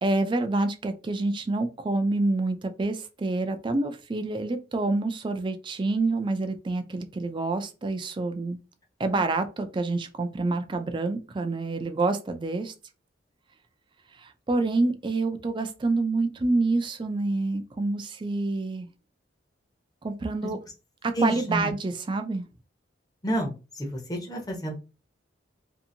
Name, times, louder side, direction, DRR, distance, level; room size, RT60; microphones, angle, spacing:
voice 1, 0.0-8.6 9.0-12.7 14.2-18.9 20.0-20.6 21.0-22.5, right 2 dB, 25° right, 0.4 m, -27 dB
voice 2, 21.1-21.7 23.2-24.8, right 1 dB, 20° left, 0.8 m, -30 dB
2.7 x 2.6 x 2.6 m
head